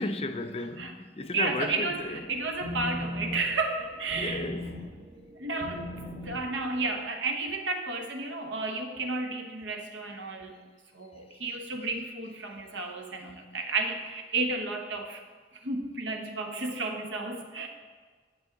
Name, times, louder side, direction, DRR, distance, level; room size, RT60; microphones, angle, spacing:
voice 1, 0.0-2.2 4.2-4.7, left 2 dB, 30° left, 0.4 m, -34 dB
voice 2, 1.3-4.5 5.4-5.9 6.2-10.6 10.9-15.2 15.6-17.7, right 3 dB, 85° right, 1.0 m, -32 dB
sound 1, 1.9-7.1, left 1 dB, 45° right, 1.0 m, -39 dB
11.0 x 7.6 x 3.8 m
head